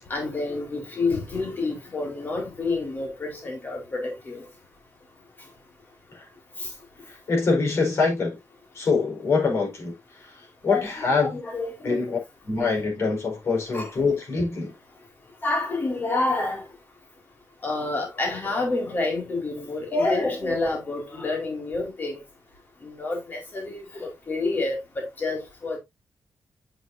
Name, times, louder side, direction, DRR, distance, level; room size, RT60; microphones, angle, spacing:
voice 1, 0.1-4.4 6.6-6.7 10.7-12.0 13.7-13.9 15.4-16.6 17.6-22.2 22.8-25.8, left 3 dB, 35° left, 4.3 m, -28 dB
voice 2, 7.3-8.4 8.7-9.9 10.6-11.3 11.8-12.2 12.5-14.7, left 4 dB, 50° left, 4.8 m, -24 dB
8.6 x 7.7 x 2.7 m
wide cardioid pair, 165°, 6 cm